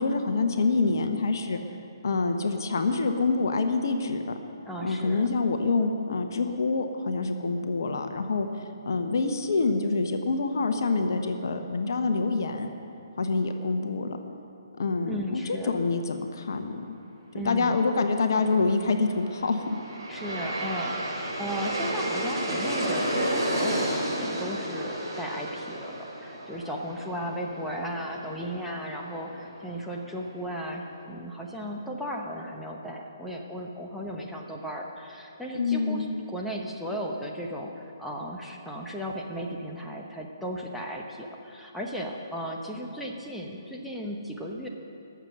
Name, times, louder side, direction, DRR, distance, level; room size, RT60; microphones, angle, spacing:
voice 1, 0.0-1.6 2.0-4.4 4.8-8.5 8.9-12.7 13.2-14.2 14.8-17.0 17.3-19.7 35.5-36.1, left 3 dB, 55° left, 6 dB, 1.1 m, -26 dB
voice 2, 4.6-5.3 15.1-15.7 17.3-17.8 20.1-44.7, equal, ahead, -2 dB, 1.0 m, -35 dB
Aircraft, 19.1-30.2, right 1 dB, 70° right, 3.8 m, -32 dB
21.0 x 7.0 x 6.4 m, 2.6 s
figure-of-eight pair, 135°, 2 cm